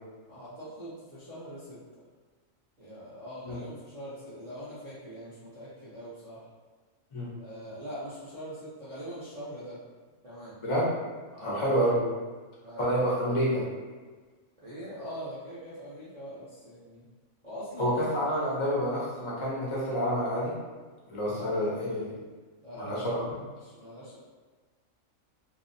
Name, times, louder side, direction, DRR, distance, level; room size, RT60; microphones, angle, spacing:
voice 1, 0.3-1.8 2.8-6.4 7.4-9.8 10.2-10.6 11.3-12.0 12.6-13.1 14.6-17.0 17.4-18.1 21.3-21.7 22.6-23.1 23.6-24.2, equal, 40° right, -11 dB, 0.5 m, -42 dB
voice 2, 10.6-10.9 11.4-12.0 12.8-13.6 17.8-20.6 21.1-22.1 22.8-23.4, equal, 35° left, -6 dB, 0.5 m, -28 dB
2.7 x 2.0 x 2.6 m, 1.4 s
omnidirectional pair, 1.4 m